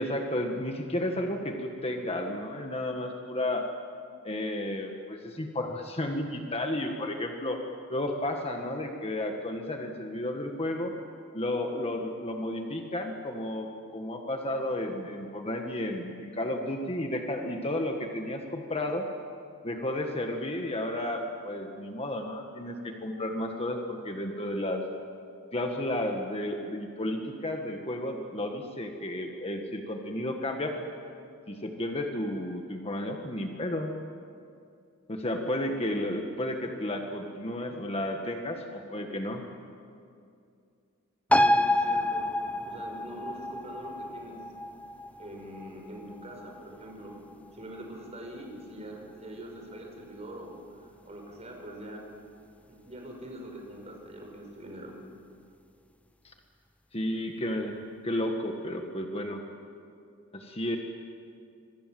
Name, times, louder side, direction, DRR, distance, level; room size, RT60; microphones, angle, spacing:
voice 1, 0.0-3.6 4.2-7.6 7.9-10.9 11.3-13.7 13.9-19.0 19.6-24.8 25.5-30.7 31.5-33.9 35.1-39.4 56.2-56.3 56.9-59.4 60.3-60.8, left 1 dB, 25° left, 3 dB, 1.7 m, -32 dB
sound 1, 41.3-48.3 48.6-48.7, left 1 dB, 5° left, 0.8 m, -29 dB
voice 2, 41.4-42.3 42.6-44.4 45.2-47.2 47.5-52.0 52.7-54.9, right 1 dB, 30° right, 1 dB, 5.6 m, -43 dB
26.0 x 24.0 x 7.8 m, 2.4 s
head